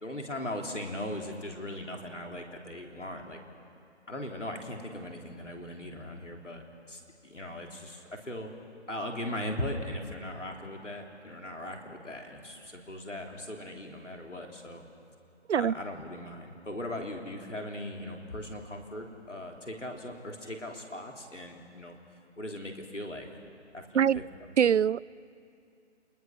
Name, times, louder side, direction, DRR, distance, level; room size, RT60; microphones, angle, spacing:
voice 1, 0.0-3.4 4.1-8.5 8.9-14.8 15.6-22.0 22.4-23.3 23.7-24.2, left 1 dB, 85° left, 2 dB, 3.4 m, -39 dB
voice 2, 24.6-25.1, right 8 dB, 75° right, 23 dB, 0.5 m, -23 dB
29.0 x 20.5 x 6.2 m, 2.5 s
figure-of-eight pair, 145°, 35 cm